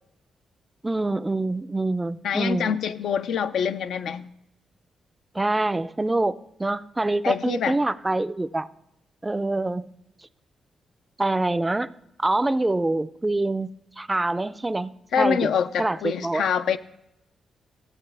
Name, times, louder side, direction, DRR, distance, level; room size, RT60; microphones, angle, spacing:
voice 1, 0.8-2.8 5.3-8.7 9.2-9.9 11.2-11.9 12.2-13.7 14.0-14.9 15.2-15.5 15.8-16.5, right 2 dB, 20° right, 0.4 m, -25 dB
voice 2, 2.2-4.3 7.2-7.8 15.1-16.8, left 7 dB, 80° left, 0.3 m, -25 dB
13.5 x 8.1 x 3.3 m
supercardioid pair, 55°, 0 cm